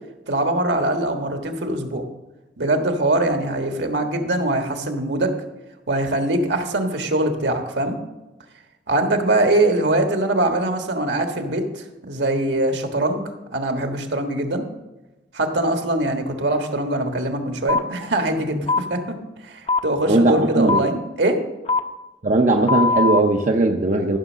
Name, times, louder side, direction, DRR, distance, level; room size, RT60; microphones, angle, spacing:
voice 1, 0.3-2.1 2.6-5.3 5.9-8.0 8.9-13.2 13.5-14.6 15.3-19.2 19.4-21.4, right 1 dB, 70° right, 4 dB, 1.5 m, -22 dB
sound 1, 17.7-17.8 18.7-18.8 19.7-19.8 20.7-20.8 21.7-21.8 22.7-23.2, left 3 dB, 30° left, 0.7 m, -19 dB
voice 2, 20.1-20.8 22.2-24.2, right 2 dB, 45° right, 3 dB, 0.7 m, -18 dB
14.0 x 6.4 x 6.3 m, 1.0 s
head